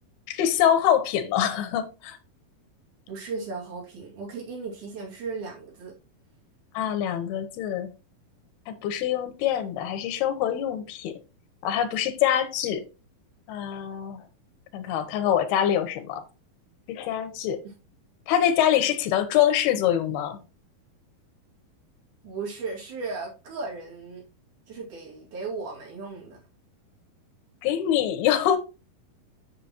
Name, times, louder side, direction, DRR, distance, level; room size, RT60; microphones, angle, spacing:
voice 1, 0.3-2.2 6.7-7.9 8.7-11.1 11.6-12.8 13.5-14.2 14.7-16.2 16.9-17.6 18.3-20.4 27.6-28.6, left 10 dB, 85° left, 2.9 m, -24 dB
voice 2, 3.1-5.9 22.2-24.2 24.7-26.4, right 4 dB, 60° right, 3.6 m, -36 dB
8.3 x 6.9 x 2.9 m
omnidirectional pair, 4.4 m